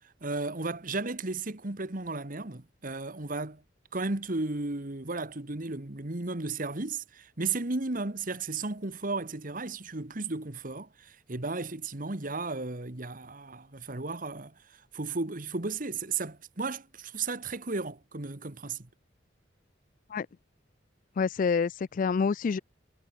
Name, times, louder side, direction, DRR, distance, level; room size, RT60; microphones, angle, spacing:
voice 1, 0.2-3.6 3.9-18.9, right 3 dB, 45° right, 1.6 m, -34 dB
voice 2, 21.2-22.6, left 5 dB, 45° left, 0.3 m, -27 dB
head